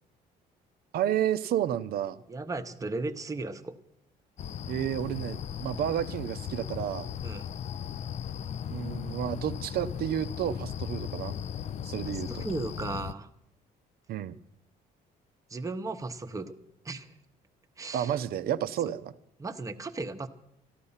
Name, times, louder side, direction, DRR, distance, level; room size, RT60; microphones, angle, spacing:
voice 1, 0.9-2.2 4.7-7.1 8.7-11.4 11.8-12.4 14.1-14.4 17.9-19.1, right 10 dB, 65° right, 12 dB, 0.6 m, -31 dB
voice 2, 2.3-3.8 7.2-7.5 12.0-13.3 15.5-16.5 16.8-17.1 17.8-18.2 19.4-20.3, right 3 dB, 20° right, 7 dB, 0.9 m, -36 dB
sound 1, 4.4-13.1, left 9 dB, 45° left, 0.4 m, -37 dB
13.5 x 12.0 x 5.6 m, 0.77 s
cardioid pair, 110°, 17 cm